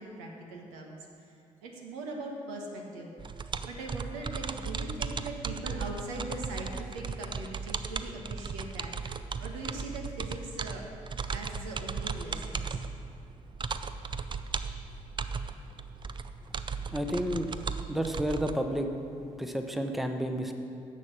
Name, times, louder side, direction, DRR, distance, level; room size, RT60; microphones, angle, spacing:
voice 1, 0.0-1.3 1.6-3.1 3.7-8.9 9.4-10.8 11.3-12.8, right 2 dB, 75° right, 0 dB, 1.2 m, -41 dB
sound 1, 3.2-18.6, right 5 dB, 30° right, 0.5 m, -36 dB
voice 2, 16.9-17.5 17.9-18.9 19.4-20.5, equal, ahead, 5 dB, 0.9 m, -30 dB
10.5 x 7.2 x 6.0 m, 2.5 s
figure-of-eight pair, 40°, 17 cm